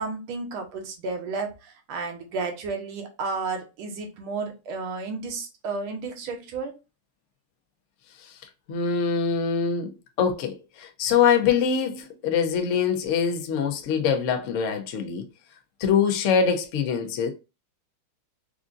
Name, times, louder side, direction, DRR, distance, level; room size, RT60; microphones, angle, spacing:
voice 1, 0.0-6.7, right 4 dB, 85° right, 1.8 m, -32 dB
voice 2, 8.7-15.2 15.8-17.3, left 7 dB, 80° left, 0.6 m, -24 dB
4.7 x 2.6 x 2.4 m
omnidirectional pair, 2.3 m